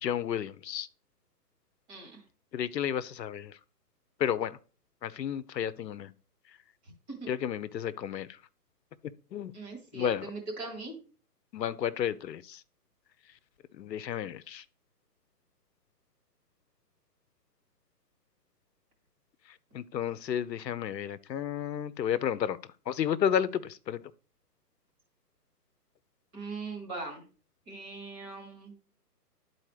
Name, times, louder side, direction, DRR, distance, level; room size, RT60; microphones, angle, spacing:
voice 1, 0.0-0.9 2.5-3.5 4.2-4.6 5.0-6.1 7.3-8.3 9.3-9.5 9.9-10.3 11.5-12.6 13.8-14.6 19.7-22.6 22.9-24.0, left 9 dB, 85° left, 0.6 m, -32 dB
voice 2, 1.9-2.2 6.8-6.9 7.2-7.3 9.5-11.0 26.3-27.2 27.7-28.7, right 3 dB, 20° right, 2.0 m, -40 dB
11.0 x 4.2 x 3.2 m
hypercardioid pair, 145°, 49 cm